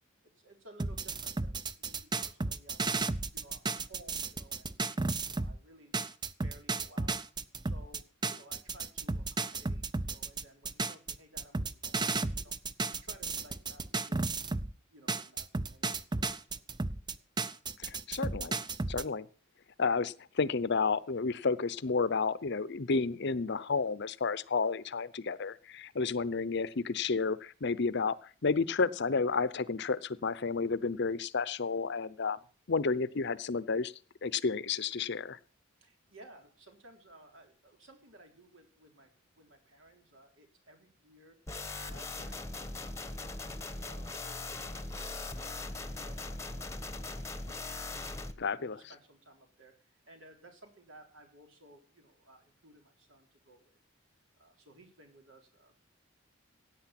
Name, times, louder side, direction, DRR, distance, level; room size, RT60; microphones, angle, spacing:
voice 1, 0.2-2.9 3.3-5.9 6.4-7.2 7.6-12.5 13.0-14.5 14.9-17.2 26.1-26.2 35.8-41.4 41.7-44.8 45.1-47.9 48.4-53.8 54.4-55.8, right 1 dB, 70° right, 4 dB, 3.7 m, -58 dB
sound 1, 0.8-5.6 5.9-14.7 15.1-19.0, right 3 dB, 20° right, 0.6 m, -34 dB
voice 2, 17.8-18.6 18.9-19.3 19.8-32.4 32.7-33.9 34.2-35.4 48.4-48.8, left 4 dB, 60° left, 17 dB, 0.7 m, -31 dB
sound 2, 41.5-48.3, left 2 dB, 15° left, 1.1 m, -40 dB
16.5 x 9.2 x 5.9 m, 0.40 s
head